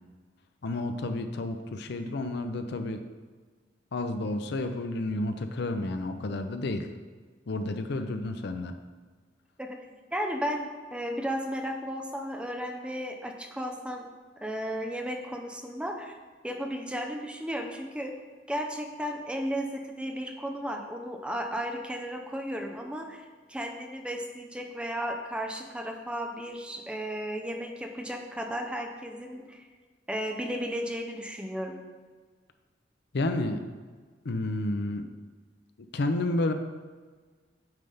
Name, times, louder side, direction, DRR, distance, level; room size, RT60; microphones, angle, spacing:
voice 1, 0.6-3.0 3.9-6.9 7.5-8.8 33.1-33.6 34.2-35.1 35.9-36.5, left 2 dB, 65° left, 7 dB, 0.6 m, -30 dB
voice 2, 10.1-14.1 14.4-16.2 16.4-18.1 18.5-29.7 30.1-31.7, equal, 5° right, 3 dB, 0.6 m, -34 dB
9.1 x 3.4 x 5.4 m, 1.5 s
head